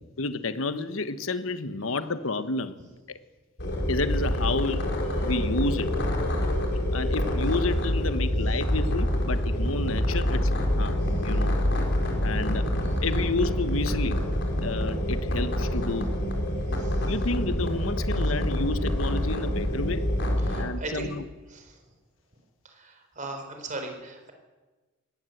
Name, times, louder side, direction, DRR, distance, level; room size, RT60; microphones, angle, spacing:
voice 1, 0.2-2.8 3.1-3.2 3.9-4.8 5.2-5.9 6.9-11.6 12.2-12.7 13.0-14.2 14.6-16.1 17.0-20.0 20.6-21.2, left 3 dB, 85° left, 12 dB, 1.2 m, -30 dB
sound 1, 3.6-20.6, equal, 60° left, 4.5 m, -26 dB
voice 2, 16.7-17.1 20.4-21.2 21.5-21.8 22.6-24.3, right 2 dB, 40° right, 4 dB, 4.2 m, -39 dB
20.0 x 17.5 x 8.0 m, 1.3 s
head